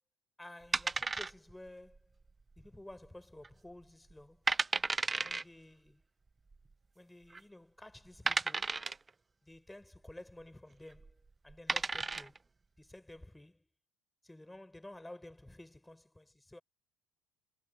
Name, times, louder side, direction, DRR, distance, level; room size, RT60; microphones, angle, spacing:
voice 1, 0.4-2.1 2.6-4.5 5.2-6.0 6.9-8.9 9.4-12.4 12.8-13.7 14.2-16.6, left 1 dB, 5° left, 5.9 m, -52 dB
sound 1, 0.7-1.7 2.0-2.1 2.7-3.1 3.4-3.5 4.1-4.2 4.5-5.4 6.5-6.6 7.3-7.4 8.3-9.1 10.9-11.1 11.5-12.4, right 3 dB, 20° right, 0.7 m, -33 dB
cardioid pair, 120°, 0 cm